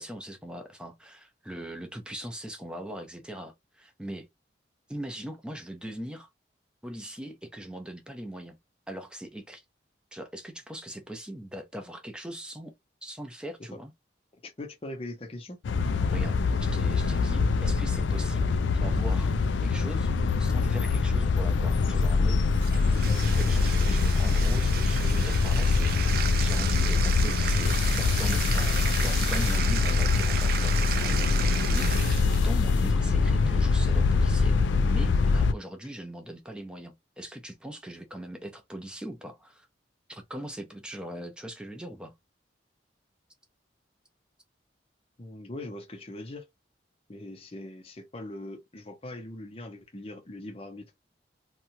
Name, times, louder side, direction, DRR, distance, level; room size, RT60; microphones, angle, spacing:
voice 1, 0.0-4.3 4.9-6.3 6.8-8.6 8.9-9.6 10.1-12.7 13.0-13.9 16.1-19.3 19.6-20.1 20.4-22.7 23.2-39.7 40.1-42.1, right 1 dB, 5° right, 0.6 m, -40 dB
voice 2, 14.4-15.6 22.8-23.4 23.9-24.0 28.5-28.9 29.8-29.9 33.1-33.3 45.2-46.5 47.1-50.8, left 1 dB, 30° left, 0.7 m, -41 dB
sound 1, 15.6-35.5, left 4 dB, 75° left, 0.4 m, -24 dB
Bathtub (filling or washing), 22.5-32.6, right 8 dB, 55° right, 0.4 m, -34 dB
2.9 x 2.3 x 2.6 m
head